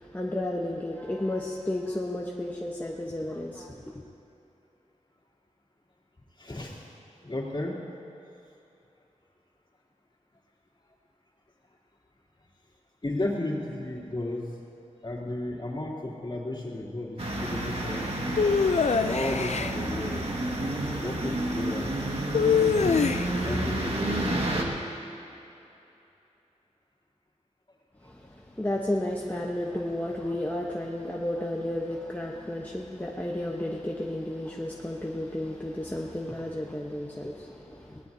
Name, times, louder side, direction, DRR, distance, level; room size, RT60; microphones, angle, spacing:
voice 1, 0.0-3.9 28.0-38.0, left 1 dB, 15° left, -2 dB, 1.0 m, -32 dB
voice 2, 6.4-6.9 7.2-7.8 13.0-14.6 15.0-18.4 19.0-20.3 21.0-22.0 22.5-23.0 23.4-24.5, left 1 dB, 40° left, -5 dB, 3.1 m, -34 dB
sound 1, 17.2-24.6, right 1 dB, 50° right, 1.8 m, -30 dB
sound 2, 18.4-19.7 22.3-23.5, left 6 dB, 60° left, 0.5 m, -24 dB
21.5 x 18.0 x 2.8 m, 2.8 s
wide cardioid pair, 80°, 13 cm